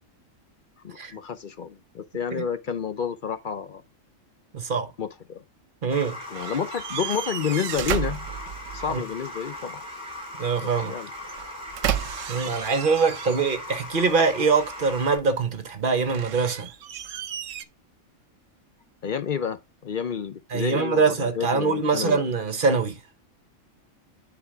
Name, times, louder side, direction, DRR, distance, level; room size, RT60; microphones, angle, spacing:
voice 1, 0.8-3.8 5.0-5.4 6.3-8.3 8.7-9.8 10.6-11.1 12.4-12.6 19.0-22.2, left 7 dB, 50° left, 0.7 m, -30 dB
voice 2, 4.5-4.9 5.8-6.2 8.9-9.0 10.4-11.0 12.3-16.7 20.5-23.0, right 4 dB, 45° right, 1.0 m, -23 dB
sound 1, 5.9-15.2, left 1 dB, 5° right, 4.7 m, -38 dB
sound 2, 6.3-9.0 11.2-13.7 14.1-15.0 15.9-17.6, right 10 dB, 80° right, 1.0 m, -33 dB
9.8 x 3.9 x 3.5 m
omnidirectional pair, 1.3 m